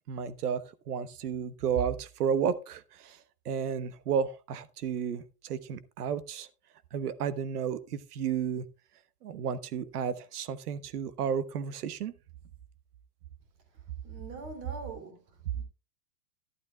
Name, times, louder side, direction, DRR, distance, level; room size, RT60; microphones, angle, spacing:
voice 1, 0.1-0.6 0.9-6.5 6.9-8.6 9.2-12.1, right 7 dB, 80° right, 1.3 m, -32 dB
voice 2, 14.0-15.6, right 3 dB, 30° right, 3.1 m, -44 dB
14.5 x 12.0 x 2.3 m
supercardioid pair, 155°, 46 cm